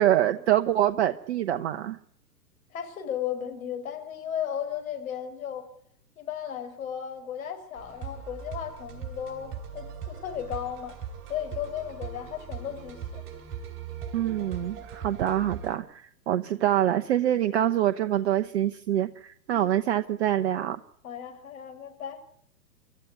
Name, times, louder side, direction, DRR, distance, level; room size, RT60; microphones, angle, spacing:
voice 1, 0.0-2.0 14.1-20.8, right 12 dB, 40° right, 8 dB, 0.9 m, -25 dB
voice 2, 2.7-5.7 6.2-11.0 11.3-13.2 19.5-19.7 21.0-22.2, left 9 dB, 55° left, 6 dB, 5.6 m, -35 dB
sound 1, 7.8-15.8, right 7 dB, 25° right, 6.3 m, -40 dB
26.5 x 14.0 x 9.5 m, 0.71 s
figure-of-eight pair, 115°, 49 cm